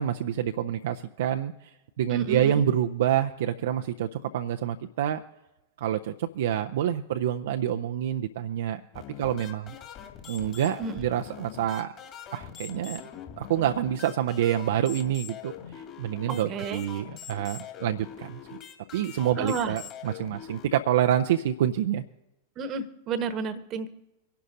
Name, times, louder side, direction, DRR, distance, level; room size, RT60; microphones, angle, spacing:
voice 1, 0.0-1.7 2.0-5.2 5.8-8.8 9.2-9.7 10.3-11.9 12.3-13.0 13.4-18.4 18.9-22.0, right 10 dB, 60° right, 6 dB, 0.5 m, -27 dB
voice 2, 2.1-2.6 10.8-10.9 16.3-16.8 19.4-19.7 22.6-23.9, right 5 dB, 35° right, 13 dB, 1.1 m, -31 dB
sound 1, 8.9-20.7, left 9 dB, 35° left, 2.4 m, -43 dB
26.0 x 11.5 x 2.7 m, 0.98 s
figure-of-eight pair, 90°, 0 cm